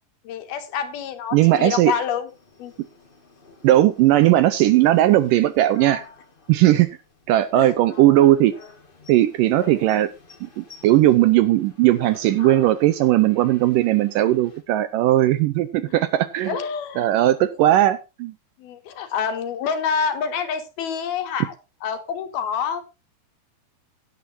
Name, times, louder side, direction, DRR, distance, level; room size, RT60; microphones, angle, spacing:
voice 1, 0.3-2.3 2.6-2.7 6.6-6.8 7.6-7.7 15.9-16.0 16.5-17.1 18.6-21.5 21.8-22.8, left 6 dB, 75° left, 8 dB, 3.5 m, -27 dB
voice 2, 1.3-1.9 3.6-6.1 6.5-6.9 7.3-8.5 9.1-10.1 10.4-16.6 17.0-18.3, right 14 dB, 75° right, 13 dB, 2.0 m, -18 dB
sound 1, 2.3-14.6, left 4 dB, 40° left, 0.7 m, -46 dB
17.0 x 10.5 x 2.7 m, 0.27 s
omnidirectional pair, 4.4 m